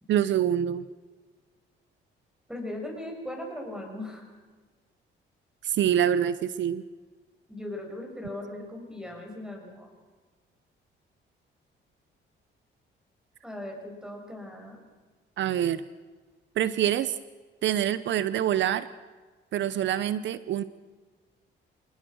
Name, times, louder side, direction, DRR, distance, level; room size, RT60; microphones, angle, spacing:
voice 1, 0.1-0.8 5.6-6.8 15.4-15.8 16.6-17.2 17.6-18.9 19.5-20.6, right 10 dB, 70° right, 16 dB, 0.7 m, -25 dB
voice 2, 2.5-4.3 7.5-9.9 13.4-14.8, left 1 dB, 5° right, 2 dB, 6.9 m, -38 dB
27.0 x 19.5 x 6.3 m, 1.4 s
cardioid pair, 90°, 20 cm